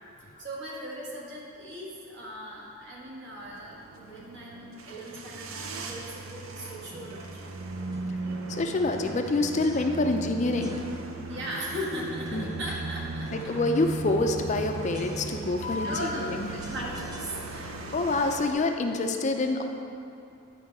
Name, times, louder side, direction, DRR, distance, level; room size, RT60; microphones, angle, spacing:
voice 1, 0.2-7.5 11.3-13.5 15.8-17.8, equal, 60° right, -4 dB, 1.7 m, -38 dB
sound 1, 3.4-18.5, right 2 dB, 85° right, 0.6 m, -37 dB
sound 2, 6.9-7.3 7.9-8.3 8.9-10.3 10.6-11.2 11.6-12.7 13.2-15.6 15.9-17.8, equal, 20° right, 0.7 m, -49 dB
voice 2, 8.5-10.8 12.3-12.5 13.3-16.5 17.6-19.6, left 2 dB, 35° left, 4 dB, 0.4 m, -27 dB
10.5 x 4.5 x 4.7 m, 2.6 s
head